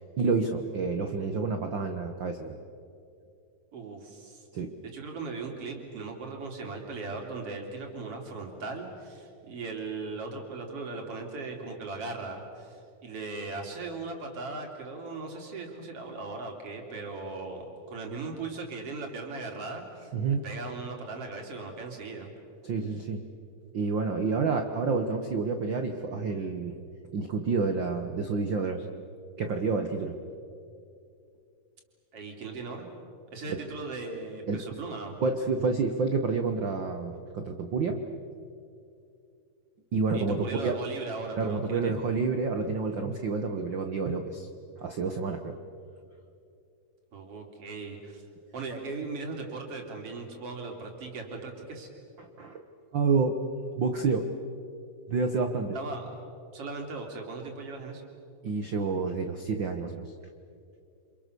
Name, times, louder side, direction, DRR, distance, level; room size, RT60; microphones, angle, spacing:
voice 1, 0.2-2.6 4.5-4.7 20.1-20.4 22.6-23.2 23.7-26.7 27.1-28.8 29.4-30.2 33.5-33.6 34.5-34.6 35.2-38.0 39.9-40.8 41.3-44.5 44.8-45.6 52.2-52.6 52.9-53.4 53.8-54.3 55.1-55.8 58.4-60.1, right 4 dB, 80° right, 6 dB, 1.0 m, -29 dB
voice 2, 3.7-4.5 4.8-20.1 20.4-22.3 32.1-32.9 33.3-35.2 40.1-42.0 47.1-48.2 48.5-51.9 55.7-56.1 56.5-58.0, right 3 dB, 45° right, 2 dB, 4.1 m, -38 dB
29.5 x 27.0 x 6.9 m, 2.5 s
omnidirectional pair, 4.0 m